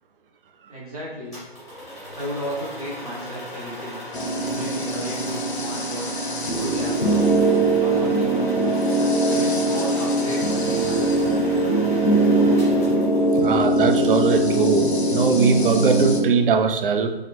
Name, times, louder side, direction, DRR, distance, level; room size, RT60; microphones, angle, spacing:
voice 1, 0.7-1.4 2.1-4.0 4.5-7.3 7.8-8.8 9.3-11.2, equal, 35° right, -5 dB, 1.0 m, -34 dB
sound 1, 1.3-13.6, equal, ahead, 0.9 m, -37 dB
sound 2, 4.1-16.2, right 1 dB, 85° left, 0.7 m, -21 dB
voice 2, 13.4-17.1, right 5 dB, 60° right, 8 dB, 0.4 m, -20 dB
3.6 x 3.3 x 3.0 m, 1.1 s
figure-of-eight pair, 150°, 31 cm